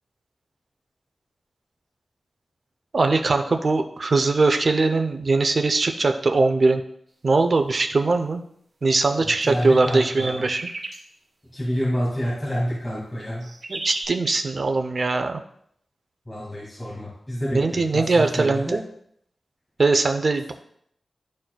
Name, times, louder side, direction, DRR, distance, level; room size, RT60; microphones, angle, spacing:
voice 1, 2.9-6.8 7.2-8.4 8.8-10.6 13.7-15.4 17.5-18.8 19.8-20.5, right 3 dB, 45° right, 6 dB, 0.6 m, -21 dB
voice 2, 9.2-10.4 11.5-13.5 16.3-18.8, equal, 20° left, -7 dB, 2.0 m, -28 dB
sound 1, 9.3-11.0 13.2-14.0, right 2 dB, 65° right, 1.7 m, -34 dB
11.5 x 4.3 x 2.3 m, 0.68 s
wide cardioid pair, 140°, 0 cm